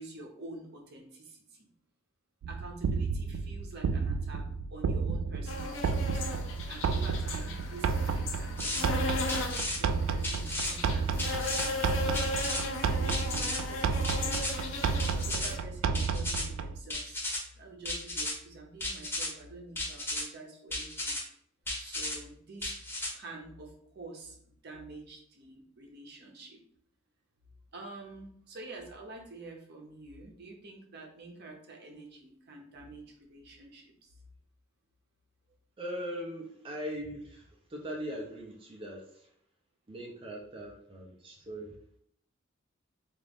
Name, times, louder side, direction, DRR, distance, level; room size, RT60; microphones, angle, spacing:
voice 1, 0.0-1.7 2.5-6.3 6.7-9.5 9.8-14.5 15.1-17.3 17.6-21.2 21.8-22.8 23.1-26.6 27.7-34.1, right 2 dB, 55° right, 1 dB, 0.8 m, -47 dB
sound 1, 2.4-16.8, right 5 dB, 90° right, 0.3 m, -32 dB
sound 2, 5.5-15.6, left 3 dB, 75° left, 0.7 m, -37 dB
sound 3, 8.6-8.8 9.3-9.8 10.2-10.7 11.2-11.7 12.1-12.6 13.1-13.6 14.0-14.5 15.0-15.5 15.9-16.4 16.9-17.4 17.8-18.3 18.8-19.3 19.7-20.2 20.7-21.2 21.7-22.2 22.6-23.1, left 2 dB, 10° left, 0.9 m, -34 dB
voice 2, 35.8-39.3 39.9-41.8, equal, 25° right, -2 dB, 0.6 m, -40 dB
3.7 x 2.6 x 3.5 m, 0.67 s
head